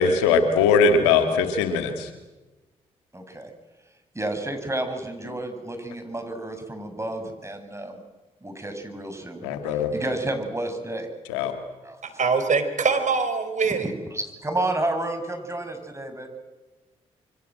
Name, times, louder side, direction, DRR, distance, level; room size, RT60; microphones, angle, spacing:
voice 1, 0.0-2.1 9.4-9.9 11.3-11.5, left 5 dB, 90° left, 7 dB, 2.3 m, -20 dB
voice 2, 3.1-3.5 4.1-8.0 8.4-9.5 9.9-11.1 11.8-12.0 13.7-13.9 14.4-16.3, right 1 dB, 20° right, 6 dB, 7.9 m, -30 dB
voice 3, 12.2-13.9, right 5 dB, 55° right, 9 dB, 5.0 m, -23 dB
27.0 x 24.5 x 7.9 m, 1.1 s
hypercardioid pair, 40°, 15 cm